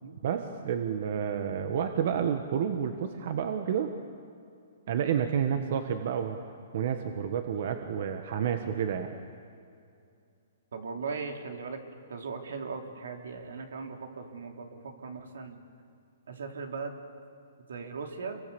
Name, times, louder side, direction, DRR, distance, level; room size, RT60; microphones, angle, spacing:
voice 1, 0.2-3.9 4.9-6.4 6.7-9.1, right 8 dB, 55° right, 7 dB, 1.5 m, -30 dB
voice 2, 10.7-11.8 12.1-15.6 16.3-17.0 17.7-18.4, right 4 dB, 80° right, 4 dB, 3.3 m, -38 dB
28.5 x 24.0 x 7.1 m, 2.4 s
hypercardioid pair, 160°, 0 cm